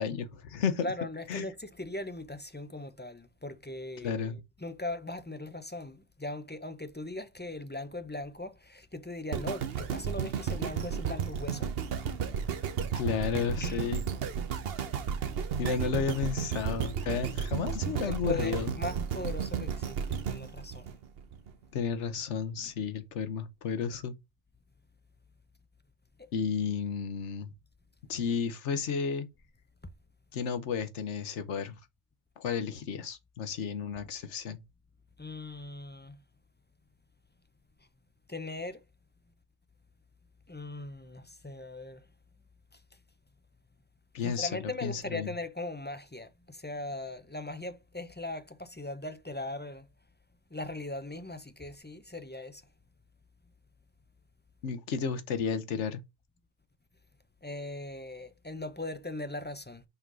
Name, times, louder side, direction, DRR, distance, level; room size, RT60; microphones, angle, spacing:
voice 1, 0.0-0.9 1.3-1.5 4.0-4.4 12.9-14.0 15.6-18.7 21.7-24.1 26.3-27.5 28.1-29.3 30.3-31.8 32.4-34.6 44.1-44.5 44.8-45.3 54.6-56.0, left 6 dB, 90° left, 1.2 m, -32 dB
voice 2, 0.8-4.2 4.6-11.7 13.6-13.8 18.0-21.0 26.2-26.3 35.2-36.2 38.3-38.8 40.5-42.1 42.7-42.8 44.2-49.9 50.5-52.6 57.4-59.8, left 2 dB, 15° left, 0.3 m, -39 dB
sound 1, 9.3-21.5 22.1-22.2, right 7 dB, 60° right, 0.9 m, -33 dB
5.6 x 3.8 x 6.0 m
omnidirectional pair, 1.2 m